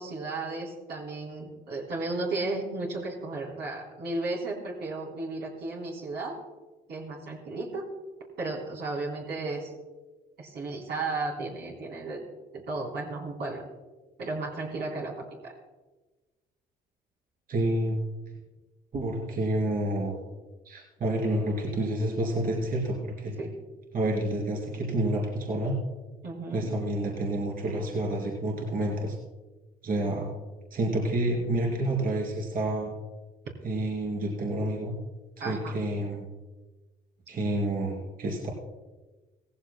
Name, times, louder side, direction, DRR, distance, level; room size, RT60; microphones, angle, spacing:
voice 1, 0.0-6.4 6.9-7.9 8.4-9.7 10.4-12.2 12.5-13.6 14.2-15.1 15.4-15.5 23.4-23.5 26.2-26.7 35.4-35.7, right 3 dB, 70° right, -3 dB, 3.8 m, -34 dB
voice 2, 17.5-18.0 18.9-20.2 20.7-23.4 23.9-25.8 26.5-29.2 29.8-30.3 30.7-32.9 33.6-35.0 35.4-36.2 37.3-38.5, right 1 dB, 50° right, -2 dB, 3.6 m, -29 dB
17.5 x 15.0 x 2.3 m, 1.2 s
supercardioid pair, 65°, 19 cm